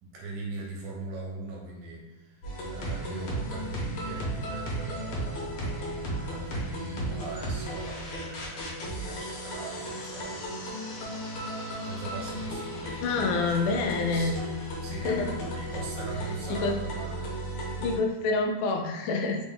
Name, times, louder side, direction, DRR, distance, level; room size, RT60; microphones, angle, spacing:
voice 1, 0.0-10.5 11.8-17.3, right 3 dB, 75° right, -2 dB, 2.1 m, -41 dB
sound 1, 2.4-18.0, right 1 dB, 70° left, 2.1 m, -35 dB
voice 2, 13.0-14.4 14.9-15.3 16.5-16.8 17.8-19.5, left 3 dB, 90° left, 3 dB, 2.1 m, -27 dB
5.1 x 2.1 x 3.6 m, 1.0 s
omnidirectional pair, 3.5 m